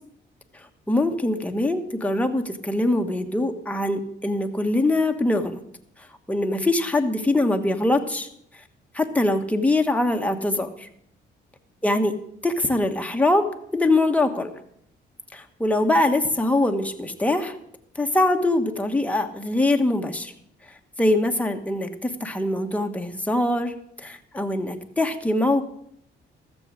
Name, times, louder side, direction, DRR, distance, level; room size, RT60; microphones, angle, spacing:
voice 1, 0.5-5.6 6.3-8.3 8.9-10.9 11.8-12.2 12.4-14.5 15.3-17.5 17.9-20.3 21.0-25.6, left 2 dB, 5° left, 4 dB, 1.2 m, -23 dB
14.0 x 7.1 x 6.3 m, 0.71 s
cardioid pair, 90°, 20 cm